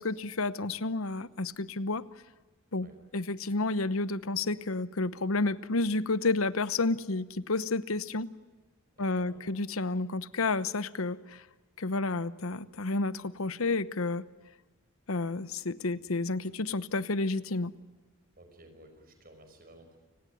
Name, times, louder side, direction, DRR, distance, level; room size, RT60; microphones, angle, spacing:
voice 1, 0.0-2.0 2.7-2.9 3.1-8.3 9.0-11.4 11.8-14.3 15.1-17.7, left 3 dB, 90° left, 16 dB, 1.0 m, -30 dB
voice 2, 9.0-9.5 15.9-16.0 18.4-20.0, right 1 dB, 45° right, 6 dB, 5.4 m, -55 dB
29.5 x 19.0 x 9.3 m, 1.3 s
head